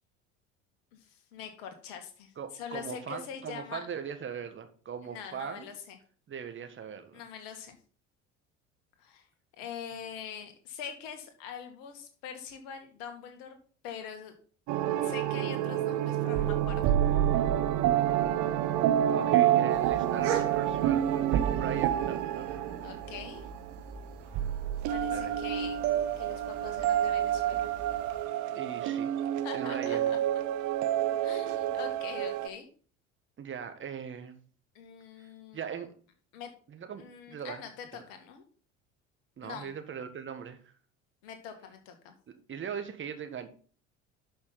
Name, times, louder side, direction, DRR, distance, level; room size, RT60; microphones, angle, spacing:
voice 1, 0.9-3.8 5.1-6.0 7.1-7.8 9.0-9.3 9.6-13.6 13.8-14.4 15.0-17.0 22.8-23.5 24.9-25.8 26.2-27.7 29.4-30.2 31.2-32.7 34.7-35.6 36.3-36.5 37.0-38.4 39.4-39.7 41.2-42.1, left 7 dB, 60° left, 6 dB, 2.2 m, -43 dB
voice 2, 2.4-5.7 6.3-7.2 19.1-22.5 25.1-25.4 28.6-29.1 29.5-30.1 33.4-34.4 35.2-35.3 35.5-35.9 36.7-37.6 39.4-40.7 42.5-43.5, right 7 dB, 30° right, 7 dB, 1.7 m, -40 dB
sound 1, 14.7-24.0 24.3-32.5, right 11 dB, 50° right, 0.9 m, -28 dB
sound 2, 19.7-28.3, right 6 dB, 70° right, 2.0 m, -42 dB
11.5 x 6.0 x 4.0 m, 0.42 s
figure-of-eight pair, 65°, 38 cm